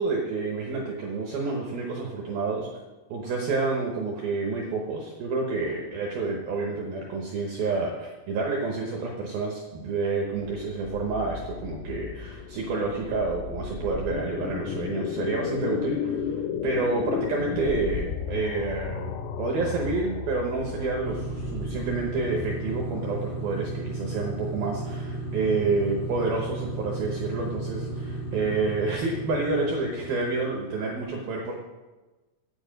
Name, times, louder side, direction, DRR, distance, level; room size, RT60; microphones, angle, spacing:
voice 1, 0.0-2.7 3.1-31.6, right 3 dB, 80° right, 0 dB, 2.1 m, -29 dB
sound 1, 10.4-23.6, left 6 dB, 85° left, 3.3 m, -34 dB
sound 2, 21.0-30.8, right 2 dB, 70° left, 1.0 m, -34 dB
9.7 x 8.6 x 5.2 m, 1.2 s
omnidirectional pair, 6.0 m